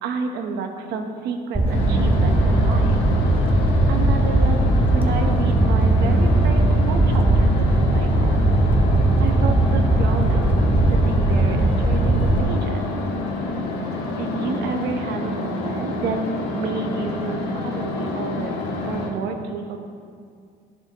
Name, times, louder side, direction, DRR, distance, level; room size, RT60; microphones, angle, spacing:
voice 1, 0.0-3.0 3.9-4.6 4.9-8.5 9.2-10.5 10.9-12.9 14.1-16.2 16.5-19.8, right 5 dB, 80° right, 4 dB, 1.1 m, -30 dB
Fire, 1.5-12.4, right 2 dB, 10° right, 0.9 m, -18 dB
sound 1, 1.6-19.1, left 3 dB, 90° left, 1.5 m, -28 dB
12.0 x 11.5 x 3.0 m, 2.2 s
cardioid pair, 110°, 17 cm